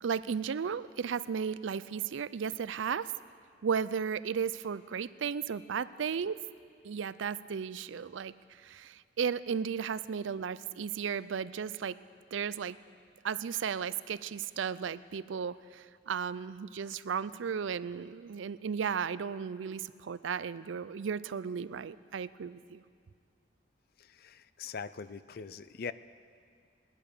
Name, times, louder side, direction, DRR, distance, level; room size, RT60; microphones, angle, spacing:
voice 1, 0.0-3.1 3.6-6.4 6.8-8.3 8.6-12.0 12.3-12.8 13.2-22.8, right 6 dB, 85° right, 16 dB, 0.4 m, -35 dB
voice 2, 24.0-25.9, left 6 dB, 55° left, 15 dB, 0.4 m, -42 dB
19.0 x 10.5 x 6.7 m, 2.2 s
head